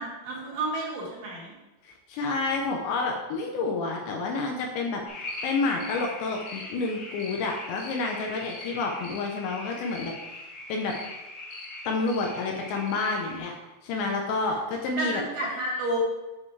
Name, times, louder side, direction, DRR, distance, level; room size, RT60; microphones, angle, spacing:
voice 1, 0.0-1.5 15.0-16.0, right 2 dB, 55° right, -6 dB, 3.7 m, -31 dB
voice 2, 1.8-11.0 11.8-13.5 13.8-15.2, left 3 dB, 75° left, 1 dB, 2.9 m, -29 dB
sound 1, 5.1-13.4, left 2 dB, 50° left, 3.2 m, -40 dB
9.7 x 6.9 x 3.3 m, 1.1 s
omnidirectional pair, 5.7 m